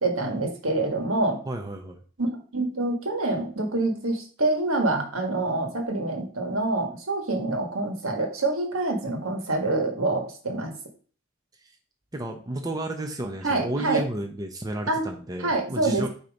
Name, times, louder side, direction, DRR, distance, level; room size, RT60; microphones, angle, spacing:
voice 1, 0.0-1.4 2.2-10.8 13.4-14.0 14.9-15.1 15.4-16.1, right 2 dB, 75° right, 3 dB, 1.5 m, -26 dB
voice 2, 1.5-2.0 11.6-11.7 12.1-16.1, right 1 dB, 15° right, 3 dB, 0.6 m, -32 dB
8.4 x 2.9 x 5.2 m, 0.42 s
head